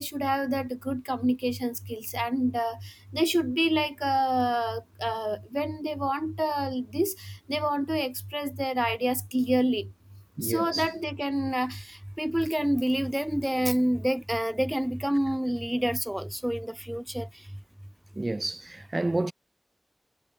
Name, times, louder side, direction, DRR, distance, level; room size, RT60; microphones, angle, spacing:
voice 1, 0.0-9.9 10.4-17.3, equal, 10° right, 1.2 m, -28 dB
voice 2, 10.4-10.9 18.1-19.3, right 2 dB, 40° right, 1.6 m, -30 dB
wide cardioid pair, 60°, 0 cm